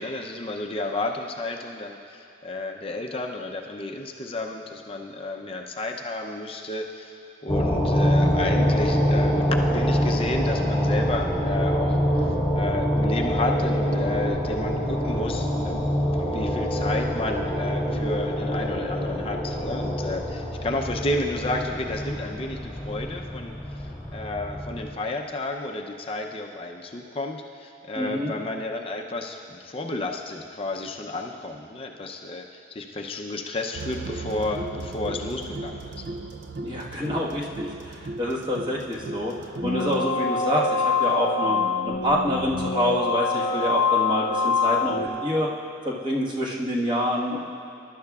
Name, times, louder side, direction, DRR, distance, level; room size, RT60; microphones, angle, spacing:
voice 1, 0.0-7.2 7.4-32.4 32.7-36.1, left 2 dB, 30° left, 2 dB, 0.6 m, -32 dB
sound 1, 7.5-24.9, equal, 5° left, 2.0 m, -25 dB
voice 2, 27.9-28.3 36.6-41.6 42.0-45.5 45.8-47.4, equal, 25° right, -4 dB, 1.4 m, -27 dB
sound 2, 33.7-40.0, right 2 dB, 70° right, 0.5 m, -36 dB
sound 3, 39.6-45.1, left 4 dB, 60° left, 0.8 m, -25 dB
21.5 x 11.5 x 2.4 m, 2.9 s
head